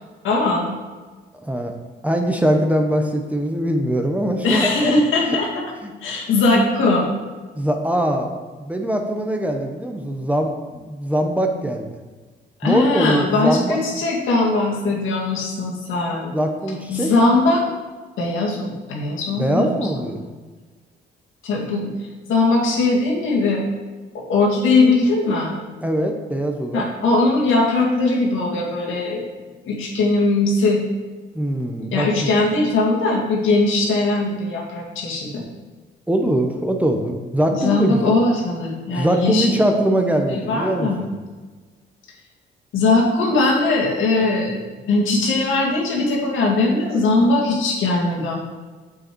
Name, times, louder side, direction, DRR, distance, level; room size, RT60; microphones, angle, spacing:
voice 1, 0.2-0.7 4.4-5.5 6.0-7.1 12.6-16.3 16.9-17.6 18.2-19.7 20.1-20.3 21.4-21.9 22.3-23.6 24.1-25.6 26.7-29.2 29.6-30.8 31.9-35.4 37.5-39.6 40.3-41.0 42.7-48.4, left 3 dB, 80° left, -2 dB, 2.0 m, -20 dB
voice 2, 1.4-1.7 2.0-4.7 5.3-5.4 5.8-5.9 7.6-8.3 8.6-11.9 12.6-13.8 16.3-17.1 19.4-20.2 25.8-26.9 31.3-32.3 36.1-38.1 39.0-41.1, right 1 dB, 5° right, 3 dB, 0.9 m, -22 dB
6.9 x 6.3 x 4.5 m, 1.3 s
cardioid pair, 90°, 20 cm